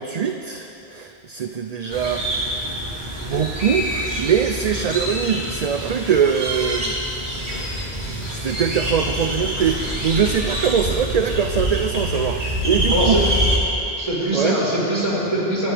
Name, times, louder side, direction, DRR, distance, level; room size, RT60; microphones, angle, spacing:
voice 1, 0.0-2.2 3.2-7.0 8.0-13.2 14.3-14.6, right 7 dB, 45° right, 6 dB, 0.6 m, -22 dB
sound 1, 1.9-13.6, equal, 85° right, 3.2 m, -26 dB
voice 2, 12.9-13.4 14.0-15.7, right 1 dB, 30° right, -7 dB, 4.7 m, -22 dB
25.5 x 16.0 x 3.5 m, 3.0 s
omnidirectional pair, 1.1 m